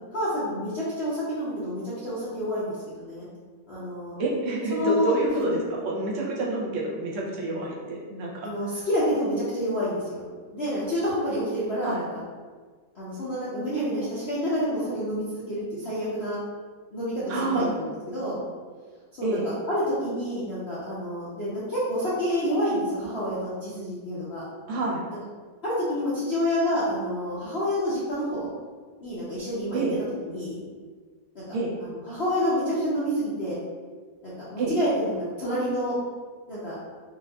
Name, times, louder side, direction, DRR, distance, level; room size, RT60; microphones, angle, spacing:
voice 1, 0.1-3.3 3.7-4.1 4.7-5.1 5.4-5.5 8.4-10.2 10.5-12.2 12.9-16.4 16.9-18.4 19.1-24.4 25.6-28.5 29.0-29.8 30.2-30.6 31.3-31.4 32.1-33.6 34.2-36.0 36.5-36.8, equal, 50° left, -10 dB, 0.8 m, -28 dB
voice 2, 4.2-8.5 11.8-12.0 17.3-17.8 19.2-19.5 24.7-25.0 29.7-29.9 31.5-31.7 34.6-34.7, right 2 dB, 60° right, -3 dB, 0.8 m, -28 dB
5.3 x 2.5 x 2.3 m, 1.5 s
omnidirectional pair, 2.0 m